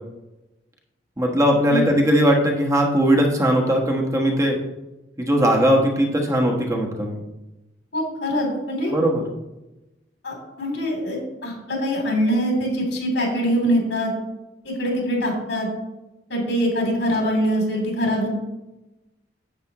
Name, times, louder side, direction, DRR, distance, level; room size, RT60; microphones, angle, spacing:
voice 1, 1.2-4.6 5.2-7.2 8.9-9.2, equal, 15° right, 0 dB, 1.2 m, -19 dB
voice 2, 7.9-8.9 10.2-14.1 14.6-15.7 16.3-18.3, equal, 75° left, 0 dB, 3.2 m, -23 dB
9.7 x 8.5 x 3.0 m, 0.99 s
head